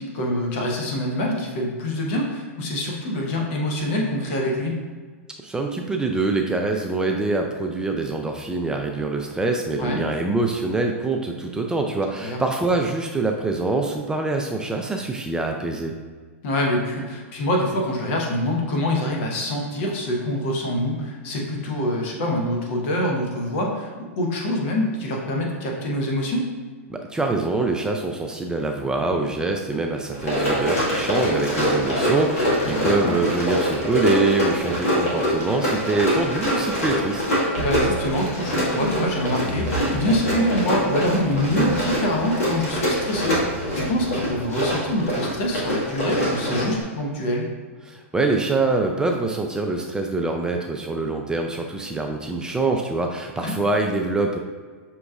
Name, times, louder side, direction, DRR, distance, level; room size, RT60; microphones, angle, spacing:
voice 1, 0.0-4.8 9.8-10.0 12.2-12.4 16.4-26.5 32.7-33.1 37.6-43.4 43.7-47.5 53.4-53.5, left 1 dB, 55° left, 0 dB, 1.0 m, -25 dB
voice 2, 5.4-15.9 26.9-37.2 47.9-54.4, right 3 dB, 10° right, 2 dB, 0.3 m, -24 dB
Run, 30.1-46.8, equal, 80° left, 1.5 m, -24 dB
sound 1, 37.6-44.7, right 2 dB, 75° right, 0.8 m, -33 dB
6.0 x 3.0 x 2.4 m, 1.5 s
hypercardioid pair, 115°, 8 cm